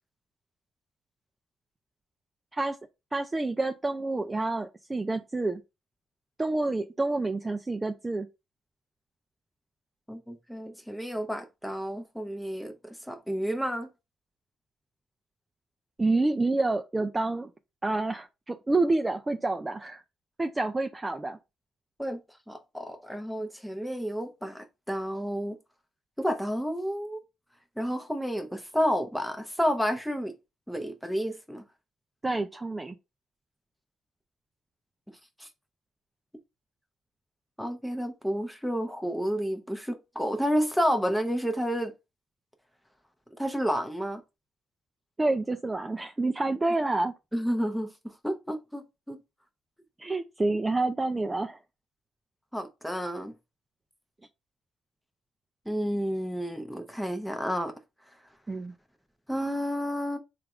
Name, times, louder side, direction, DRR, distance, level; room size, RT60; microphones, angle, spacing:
voice 1, 3.1-5.6 6.4-8.3 16.0-17.5 17.8-20.0 20.4-21.4 32.2-33.0 45.2-47.1 50.0-51.6 58.5-58.7, right 2 dB, 20° right, 0.3 m, -28 dB
voice 2, 10.1-13.9 22.0-22.2 22.5-25.6 26.2-27.2 27.8-30.3 30.7-31.6 35.4-35.5 37.6-41.9 43.4-44.2 47.3-47.9 48.2-49.2 52.5-53.3 55.7-57.7 59.3-60.2, equal, ahead, 0.7 m, -30 dB
3.4 x 2.4 x 3.0 m
cardioid pair, 90°, 0 cm